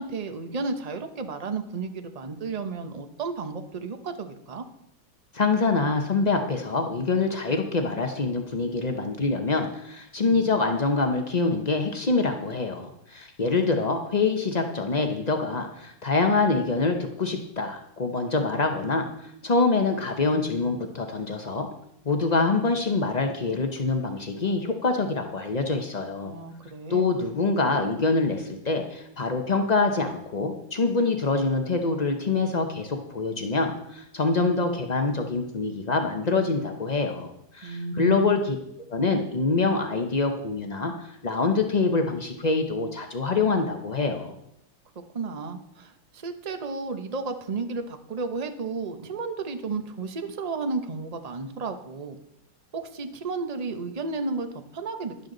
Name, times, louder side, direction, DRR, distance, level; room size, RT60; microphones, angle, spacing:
voice 1, 0.0-4.6 10.2-10.4 13.6-13.9 26.2-27.1 37.6-38.3 45.1-52.2 52.7-55.3, right 4 dB, 45° right, 7 dB, 0.5 m, -33 dB
voice 2, 5.3-21.7 22.0-26.3 26.9-38.6 38.9-44.3, left 3 dB, 80° left, 4 dB, 0.3 m, -25 dB
12.5 x 11.0 x 3.9 m, 0.78 s
omnidirectional pair, 2.2 m